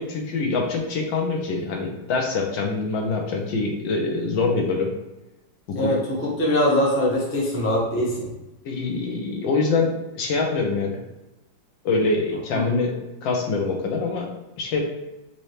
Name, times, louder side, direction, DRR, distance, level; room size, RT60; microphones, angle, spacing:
voice 1, 0.0-4.9 5.7-5.9 8.6-11.0 11.8-12.9 13.2-14.3 14.6-14.8, left 3 dB, 75° left, 1 dB, 1.4 m, -24 dB
voice 2, 5.7-8.3, left 1 dB, 20° left, -5 dB, 0.4 m, -22 dB
4.4 x 2.7 x 3.1 m, 0.99 s
omnidirectional pair, 2.1 m